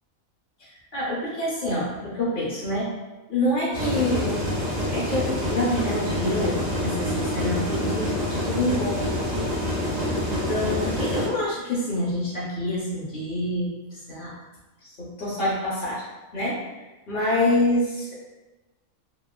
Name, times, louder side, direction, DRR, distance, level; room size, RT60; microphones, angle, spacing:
voice 1, 0.6-2.9 3.3-4.4 4.9-9.2 10.3-14.4 14.8-16.0 16.3-16.6 17.1-18.1, left 1 dB, 55° left, -6 dB, 0.6 m, -27 dB
sound 1, 3.7-11.3, left 1 dB, 40° right, 0.7 m, -27 dB
2.9 x 2.2 x 2.3 m, 1.1 s
omnidirectional pair, 1.5 m